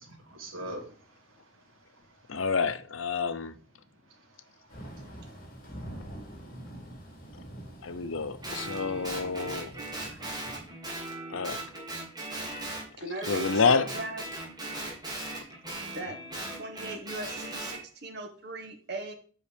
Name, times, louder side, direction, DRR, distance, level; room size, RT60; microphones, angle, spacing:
voice 1, 0.1-2.4 4.0-5.4, right 1 dB, 85° right, 2.5 m, -46 dB
voice 2, 2.3-3.5 7.8-9.7 11.3-11.6 13.3-13.9, left 5 dB, 80° left, 0.7 m, -28 dB
Thunder / Rain, 4.7-10.7, right 1 dB, 45° left, 3.3 m, -45 dB
Guitar, 8.4-12.9 13.2-17.8, right 2 dB, 20° right, 2.7 m, -38 dB
voice 3, 13.0-14.2 15.9-16.2 16.5-19.1, right 2 dB, 55° right, 1.5 m, -39 dB
7.9 x 5.6 x 5.1 m
head